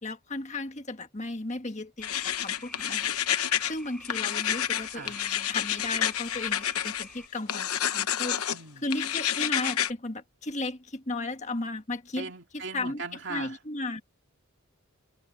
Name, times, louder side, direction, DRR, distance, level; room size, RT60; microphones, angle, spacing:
voice 1, 0.0-3.2 3.7-8.4 8.8-13.0 13.3-14.0, left 2 dB, 30° left, 1.6 m, -35 dB
sound 1, 2.0-3.7 4.0-7.0 7.5-8.6 8.9-9.9, left 10 dB, 85° left, 1.0 m, -29 dB
sound 2, 2.0-7.3, equal, ahead, 3.0 m, -48 dB
voice 2, 8.5-8.8 12.2-13.5, right 4 dB, 55° right, 2.9 m, -39 dB
head